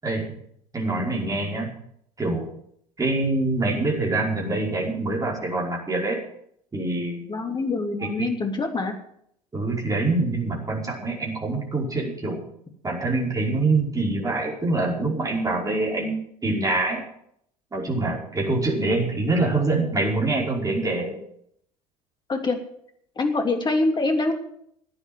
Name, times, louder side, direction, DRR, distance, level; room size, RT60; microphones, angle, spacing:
voice 1, 0.0-0.3 0.7-1.7 2.2-2.5 3.0-6.2 6.7-7.2 8.0-8.3 9.5-12.4 12.8-17.0 17.7-21.2, right 2 dB, 15° right, -2 dB, 5.3 m, -25 dB
voice 2, 7.3-9.0 22.3-22.6 23.2-24.3, left 3 dB, 20° left, 4 dB, 3.2 m, -24 dB
15.5 x 9.8 x 7.8 m, 0.70 s
figure-of-eight pair, 70°, 20 cm